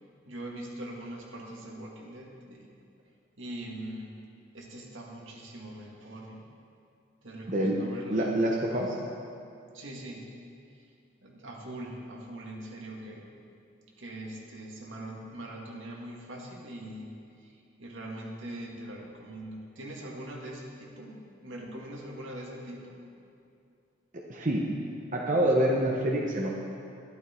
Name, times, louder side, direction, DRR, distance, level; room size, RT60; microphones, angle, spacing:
voice 1, 0.3-2.7 3.4-4.1 4.5-6.4 7.2-8.4 8.7-8.8 9.7-10.3 11.2-13.2 14.0-17.1 17.4-17.5 17.8-23.0, right 1 dB, 80° right, -2 dB, 2.1 m, -42 dB
voice 2, 8.1-9.0 24.3-24.6 25.1-26.6, right 1 dB, 40° right, -2 dB, 1.0 m, -26 dB
12.5 x 12.0 x 4.5 m, 2.4 s
head